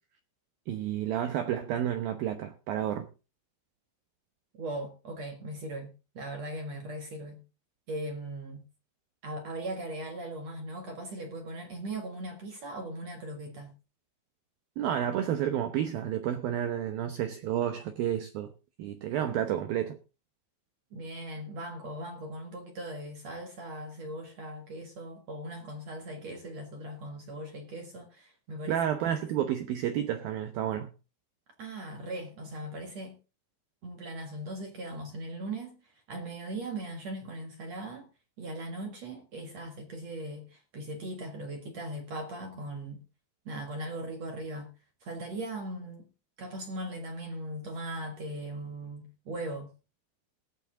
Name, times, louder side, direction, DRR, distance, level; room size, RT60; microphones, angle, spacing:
voice 1, 0.7-3.1 14.8-18.5 18.8-20.0 28.7-30.9, right 10 dB, 85° right, 2.0 m, -30 dB
voice 2, 4.5-7.4 7.9-8.6 9.2-13.7 20.9-28.8 31.6-33.2 33.8-35.8 36.1-38.1 38.4-43.0 43.5-44.7 45.0-46.1 46.4-49.7, right 1 dB, 55° right, 2.0 m, -39 dB
20.0 x 8.5 x 3.7 m
omnidirectional pair, 5.6 m